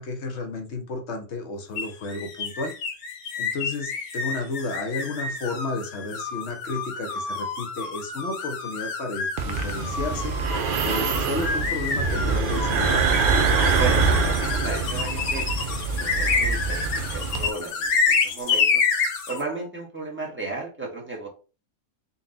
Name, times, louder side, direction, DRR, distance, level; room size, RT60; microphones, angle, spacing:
voice 1, 0.0-2.7 3.4-13.1, left 3 dB, 55° left, 5 dB, 0.9 m, -32 dB
sound 1, 1.8-19.4, left 4 dB, 80° left, 1.3 m, -28 dB
sound 2, 9.4-17.5, right 4 dB, 70° right, 0.5 m, -24 dB
voice 2, 13.7-18.8 19.3-21.3, right 3 dB, 10° right, -2 dB, 0.8 m, -34 dB
3.9 x 2.2 x 3.8 m, 0.34 s
omnidirectional pair, 1.5 m